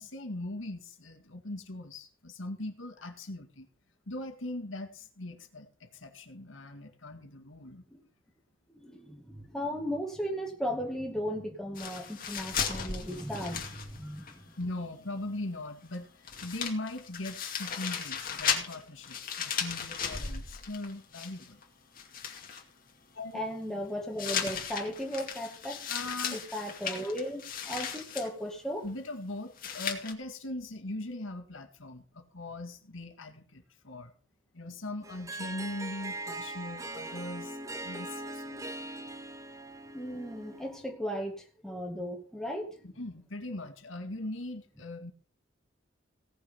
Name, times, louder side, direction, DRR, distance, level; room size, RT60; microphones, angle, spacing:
voice 1, 0.0-3.7 4.1-7.8 14.0-14.1 14.6-21.6 23.1-23.4 25.9-26.4 28.8-34.1 34.5-38.7 42.8-45.1, left 2 dB, 80° left, 5 dB, 2.1 m, -40 dB
voice 2, 8.7-14.5 23.3-25.9 26.3-28.8 39.9-42.9, equal, ahead, 1 dB, 2.3 m, -36 dB
sound 1, 11.7-14.3 14.6-14.7 15.9-16.0 16.2-21.6 22.0-22.6 24.2-28.3 29.6-30.1, left 7 dB, 45° left, 2.5 m, -36 dB
Harp, 35.0-40.8, right 2 dB, 15° right, 0.9 m, -41 dB
17.5 x 6.8 x 5.8 m, 0.40 s
head